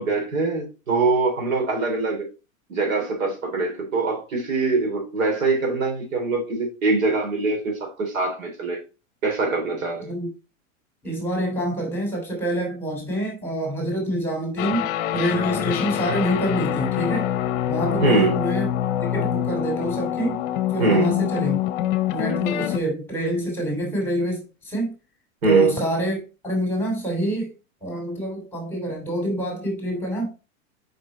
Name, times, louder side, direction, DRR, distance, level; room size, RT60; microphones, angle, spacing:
voice 1, 0.0-2.3 2.7-8.8 9.2-10.1 18.0-18.3 20.8-21.1 25.4-25.7, right 3 dB, 80° right, 3.3 m, -23 dB
voice 2, 11.0-17.3 17.7-18.7 19.0-20.4 20.7-21.6 22.1-24.9 25.4-27.5 27.8-30.3, right 1 dB, 5° left, 2.9 m, -26 dB
sound 1, 14.6-22.8, left 12 dB, 40° left, 0.8 m, -25 dB
5.2 x 5.0 x 4.0 m
hypercardioid pair, 135°, 40 cm